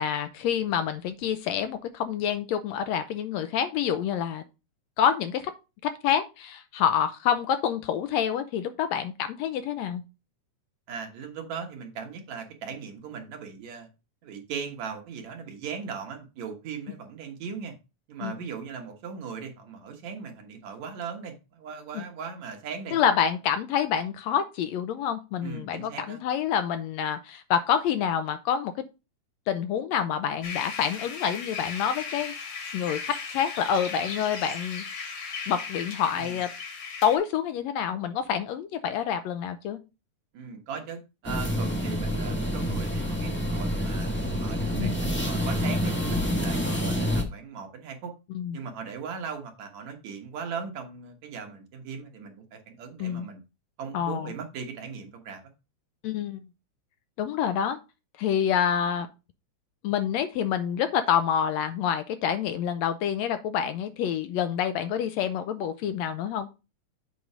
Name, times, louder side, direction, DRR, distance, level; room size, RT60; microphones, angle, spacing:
voice 1, 0.0-4.4 5.0-5.5 5.8-10.0 18.2-18.3 21.9-22.0 22.9-28.7 29.5-32.3 32.7-34.9 35.5-36.5 37.0-39.8 44.8-45.1 48.4-48.6 53.0-53.3 53.9-54.3 56.0-56.4 57.2-57.8 58.2-59.1 59.8-66.5, left 8 dB, 75° left, 1.7 m, -27 dB
voice 2, 10.9-13.9 14.2-17.7 18.1-23.0 25.4-26.2 36.2-36.4 40.3-48.1 48.5-53.4 53.8-55.4, right 6 dB, 70° right, 2.6 m, -38 dB
sound 1, 30.4-37.2, left 5 dB, 60° left, 2.6 m, -37 dB
sound 2, 41.2-47.2, equal, 15° left, 0.5 m, -27 dB
7.8 x 3.8 x 5.5 m
omnidirectional pair, 3.4 m